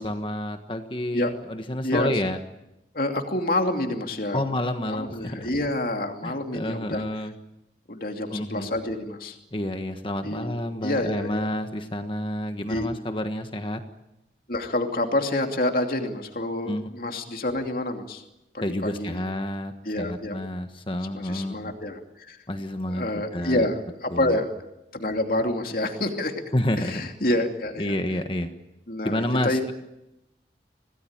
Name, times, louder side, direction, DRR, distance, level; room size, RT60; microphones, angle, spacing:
voice 1, 0.0-2.4 4.3-5.5 6.2-7.3 8.3-8.7 9.5-13.8 16.7-16.9 18.6-19.7 20.0-21.7 22.5-23.7 24.1-24.4 26.5-27.0 27.8-28.5 29.0-29.7, left 1 dB, 30° left, 7 dB, 1.4 m, -29 dB
voice 2, 2.9-4.4 4.9-7.0 7.9-9.4 10.2-11.5 12.7-12.9 14.5-18.2 18.5-19.2 19.8-20.4 21.1-22.0 22.3-22.4 22.9-24.5 24.9-26.3 26.8-27.9 28.9-29.6, left 1 dB, 55° left, 4 dB, 2.8 m, -28 dB
26.5 x 18.5 x 8.9 m, 0.91 s
head